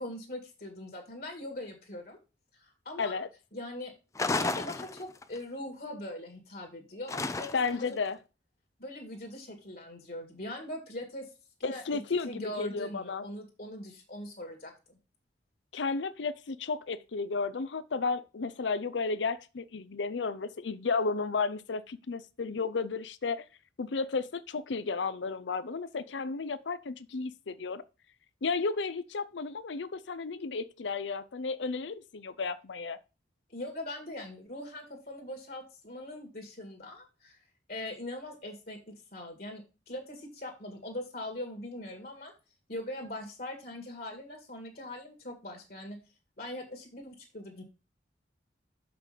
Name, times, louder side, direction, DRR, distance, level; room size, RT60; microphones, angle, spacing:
voice 1, 0.0-2.2 2.5-3.2 3.5-3.9 4.4-7.9 8.8-11.3 11.6-15.0 33.5-37.4 37.7-42.3 42.7-46.0 46.4-47.6, left 1 dB, 55° left, 2.1 m, -41 dB
voice 2, 3.0-3.3 7.5-8.2 11.6-13.2 15.7-23.4 23.8-27.8 28.4-33.0, left 4 dB, 85° left, 0.6 m, -33 dB
sound 1, 4.2-5.4 7.1-7.9, left 3 dB, 15° left, 0.4 m, -32 dB
6.6 x 6.0 x 5.1 m
head